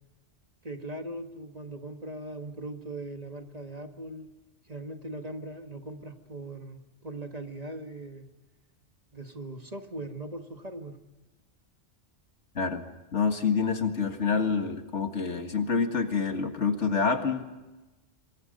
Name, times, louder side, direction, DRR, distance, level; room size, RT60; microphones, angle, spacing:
voice 1, 0.6-4.3 4.7-8.3 9.1-11.0, right 2 dB, 35° right, 6 dB, 1.7 m, -40 dB
voice 2, 12.6-12.9 13.1-17.4, left 5 dB, 75° left, 6 dB, 2.2 m, -27 dB
27.0 x 22.5 x 5.3 m, 1.1 s
omnidirectional pair, 1.2 m